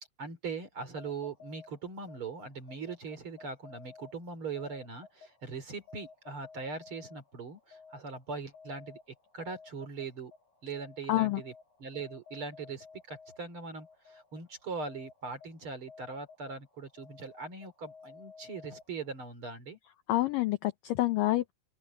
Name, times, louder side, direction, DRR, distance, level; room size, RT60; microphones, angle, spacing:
voice 1, 0.2-9.0 9.3-10.3 10.6-11.5 11.8-19.8, right 4 dB, 35° right, 3.3 m, -41 dB
sound 1, 0.8-19.3, left 5 dB, 55° left, 9.8 m, -55 dB
voice 2, 11.1-11.4 20.1-21.5, left 16 dB, 75° left, 2.0 m, -27 dB
open air
omnidirectional pair, 4.8 m